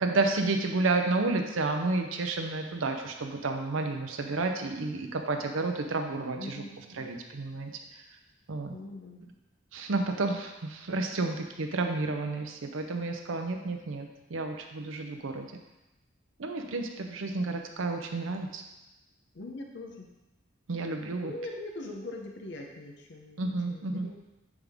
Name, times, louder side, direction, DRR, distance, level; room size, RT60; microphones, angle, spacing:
voice 1, 0.0-6.6 6.9-7.7 8.5-8.7 9.7-15.5 16.4-18.6 20.7-21.3 23.4-24.1, right 3 dB, 80° right, 4 dB, 0.6 m, -31 dB
voice 2, 6.3-6.8 8.7-9.2 19.3-20.1 21.2-24.2, left 2 dB, 60° left, 1 dB, 0.7 m, -41 dB
9.6 x 3.6 x 3.5 m, 1.0 s
head